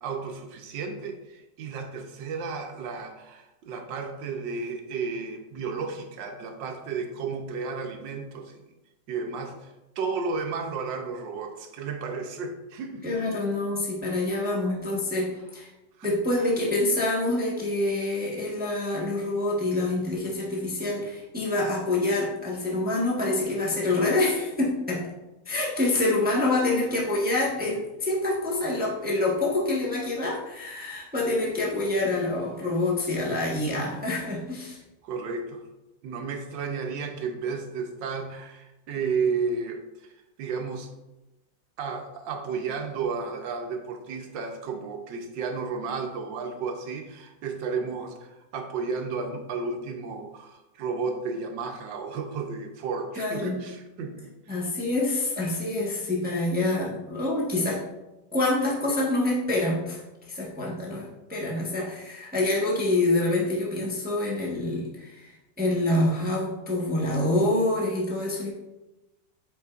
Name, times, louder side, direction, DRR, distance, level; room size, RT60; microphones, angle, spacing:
voice 1, 0.0-8.5 9.1-13.0 16.0-16.1 35.0-35.7 36.0-40.1 40.4-40.9 41.8-54.6, right 5 dB, 80° right, 4 dB, 1.5 m, -33 dB
voice 2, 13.0-15.7 16.0-25.1 25.5-34.8 53.2-53.6 54.5-57.8 58.3-60.0 60.3-65.3 65.6-68.5, left 2 dB, 5° right, -4 dB, 1.0 m, -26 dB
8.1 x 5.4 x 2.5 m, 1.0 s
omnidirectional pair, 2.0 m